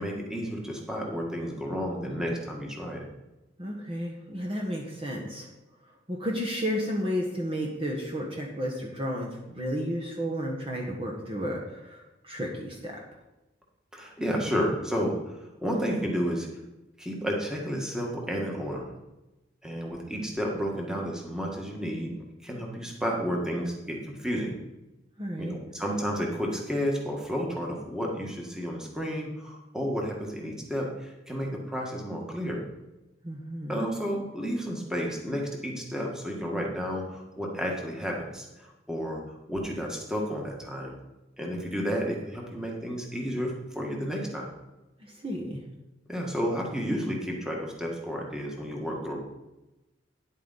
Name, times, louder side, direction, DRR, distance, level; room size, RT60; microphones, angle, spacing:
voice 1, 0.0-3.0 13.9-16.5 17.0-18.9 19.6-22.1 22.4-24.5 25.4-32.6 33.7-39.2 39.5-41.0 41.4-44.5 46.1-49.2, equal, 5° right, -1 dB, 1.6 m, -31 dB
voice 2, 3.6-5.5 6.1-13.0 25.2-25.5 33.2-33.8 45.0-45.6, equal, 30° right, -1 dB, 1.2 m, -32 dB
10.0 x 8.4 x 4.1 m, 1.0 s
head